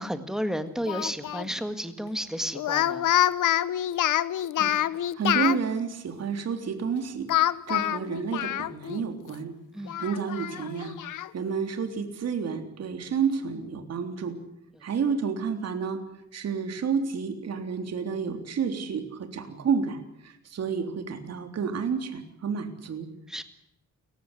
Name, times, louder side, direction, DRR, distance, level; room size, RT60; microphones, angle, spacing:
voice 1, 0.0-3.1 9.7-10.0 14.7-14.8 23.3-23.4, equal, ahead, 9 dB, 1.8 m, -32 dB
Speech, 0.9-1.5 2.6-5.6 7.3-9.0 9.3-9.4 9.9-11.3, left 12 dB, 80° left, 1.0 m, -26 dB
voice 2, 5.2-9.5 10.0-11.0 11.3-14.4 14.8-16.0 16.3-23.1, right 6 dB, 55° right, 7 dB, 3.6 m, -30 dB
29.5 x 15.5 x 10.0 m, 0.80 s
wide cardioid pair, 175°, 31 cm